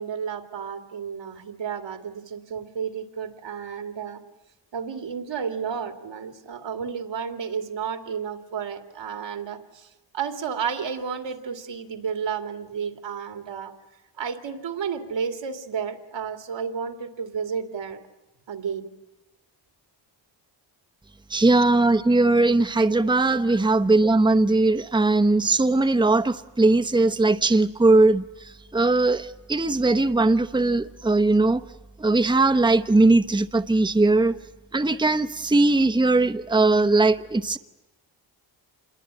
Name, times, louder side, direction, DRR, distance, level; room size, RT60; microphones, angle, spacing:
voice 1, 0.0-4.2 4.7-13.7 14.2-18.0 18.5-18.9 23.5-23.6, right 6 dB, 80° right, 6 dB, 2.4 m, -32 dB
voice 2, 21.3-31.6 32.0-34.4 34.7-37.6, right 2 dB, 10° right, 9 dB, 0.9 m, -20 dB
27.0 x 22.0 x 8.9 m, 0.99 s
cardioid pair, 80°, 44 cm